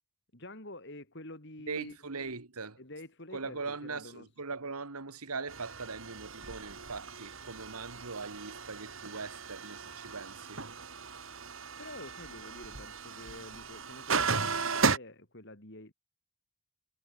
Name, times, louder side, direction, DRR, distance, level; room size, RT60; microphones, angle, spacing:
voice 1, 0.3-2.3 2.8-4.3 11.8-15.9, left 1 dB, 50° left, 4.2 m, -48 dB
voice 2, 1.7-2.8 3.3-10.6, right 4 dB, 85° right, 2.0 m, -40 dB
sound 1, 5.5-15.0, right 4 dB, 60° right, 2.9 m, -35 dB
head